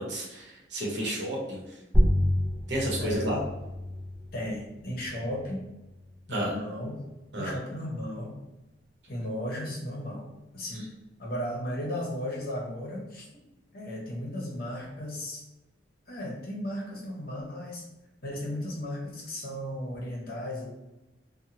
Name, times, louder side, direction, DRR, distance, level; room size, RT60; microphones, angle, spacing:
voice 1, 0.0-1.6 2.7-3.4 6.3-6.5 7.3-7.5, right 1 dB, 70° right, -3 dB, 0.8 m, -31 dB
sound 1, 1.9-7.0, equal, ahead, 0.5 m, -29 dB
voice 2, 3.0-3.4 4.3-5.6 6.3-7.0 7.4-8.3 9.1-10.3 10.5-10.9 11.2-13.3 13.7-15.4 16.1-17.8 18.2-20.7, left 1 dB, 55° left, -2 dB, 0.8 m, -35 dB
2.8 x 2.1 x 2.9 m, 1.0 s
head